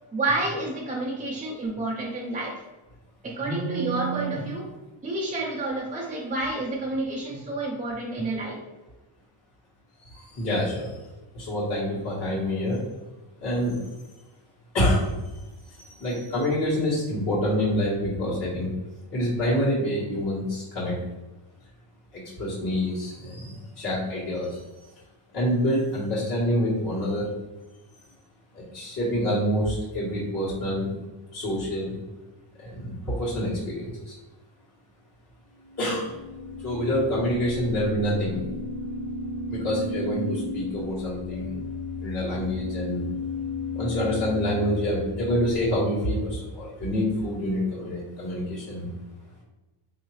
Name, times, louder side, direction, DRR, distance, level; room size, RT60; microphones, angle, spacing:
voice 1, 0.1-2.6 3.2-4.7 5.0-8.6, right 2 dB, 20° right, -3 dB, 0.4 m, -29 dB
voice 2, 10.0-10.9 11.3-12.8 13.4-13.7 14.7-15.1 15.8-18.7 19.1-20.9 22.1-24.6 25.3-27.3 28.7-30.9 31.3-31.9 32.6-34.1 35.8-36.1 36.6-38.4 39.5-41.6 42.0-43.0 43.7-48.9, equal, 40° left, -10 dB, 1.4 m, -27 dB
sound 1, 35.6-45.7, left 2 dB, 55° right, 0.7 m, -34 dB
3.8 x 2.8 x 3.1 m, 1.1 s
cardioid pair, 135°, 49 cm